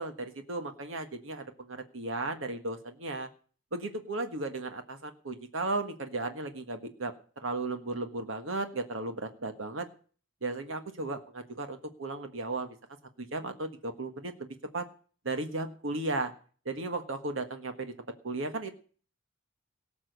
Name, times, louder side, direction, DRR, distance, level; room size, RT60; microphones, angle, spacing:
voice 1, 0.0-3.3 3.7-7.1 7.4-9.9 10.4-12.8 13.2-14.5 14.7-14.9 15.2-16.3 16.6-17.9 18.2-18.7, right 2 dB, 80° right, 7 dB, 1.6 m, -35 dB
18.5 x 6.2 x 8.1 m, 0.41 s
head